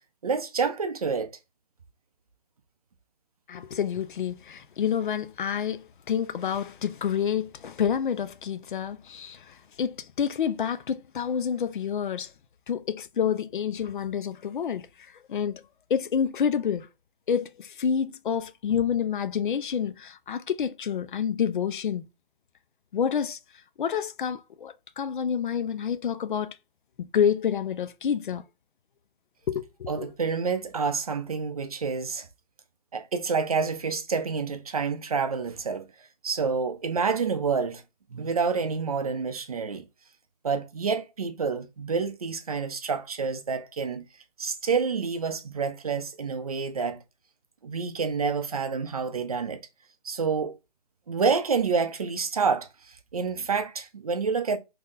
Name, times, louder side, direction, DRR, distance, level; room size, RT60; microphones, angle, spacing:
voice 1, 0.2-1.3 29.9-32.3 32.9-35.9 36.2-37.8 38.1-39.8 40.4-44.0 44.4-47.0 47.6-49.6 50.0-50.6 51.1-54.6, right 5 dB, 40° right, 0.5 m, -28 dB
voice 2, 3.5-9.4 9.8-12.3 12.7-14.9 15.3-15.6 15.9-16.9 17.3-22.1 22.9-23.4 23.8-26.5 27.0-28.4 29.5-30.1, left 8 dB, 60° left, 0.4 m, -28 dB
2.8 x 2.5 x 3.6 m
hypercardioid pair, 170°, 29 cm